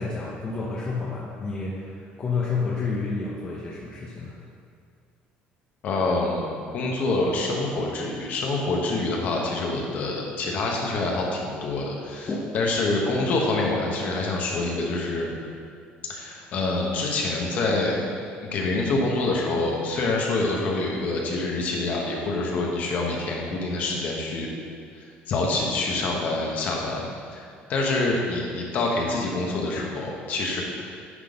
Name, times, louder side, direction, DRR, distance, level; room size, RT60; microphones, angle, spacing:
voice 1, 0.0-4.4 12.3-12.4, left 4 dB, 25° left, -5 dB, 0.8 m, -30 dB
voice 2, 5.8-12.3 12.5-15.3 16.1-18.1 18.4-24.5 25.3-27.1 27.3-30.6, left 2 dB, 45° left, -1 dB, 1.2 m, -26 dB
9.7 x 3.8 x 5.2 m, 2.2 s
cardioid pair, 170°, 4 cm